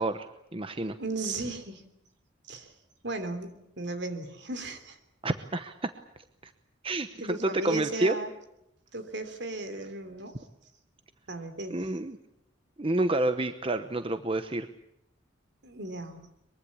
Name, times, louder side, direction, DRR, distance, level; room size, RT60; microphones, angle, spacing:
voice 1, 0.0-1.0 5.2-5.9 6.4-6.5 6.8-8.2 11.7-12.2 12.8-14.7, right 2 dB, 30° right, 9 dB, 0.9 m, -29 dB
voice 2, 1.0-1.8 2.5-2.7 3.0-5.0 7.2-8.3 8.9-10.4 11.3-11.9 15.6-16.3, right 2 dB, 65° right, 9 dB, 3.2 m, -36 dB
23.0 x 23.0 x 8.6 m, 0.82 s
head